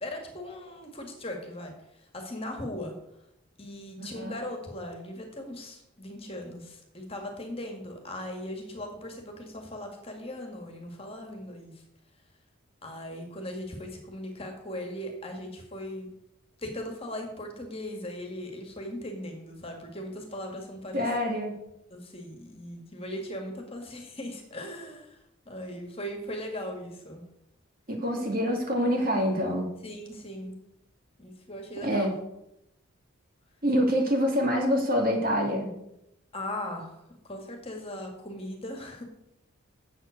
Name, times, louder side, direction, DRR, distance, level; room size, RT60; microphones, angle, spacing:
voice 1, 0.0-2.9 3.6-11.7 12.8-16.1 16.6-21.1 21.9-25.2 25.5-27.2 29.8-30.6 31.2-32.1 36.3-39.0, left 1 dB, 25° left, 3 dB, 2.0 m, -39 dB
voice 2, 4.0-4.4 20.9-21.6 27.9-29.7 31.8-32.1 33.6-35.8, equal, 45° right, 1 dB, 2.4 m, -26 dB
8.1 x 7.6 x 8.2 m, 0.83 s
head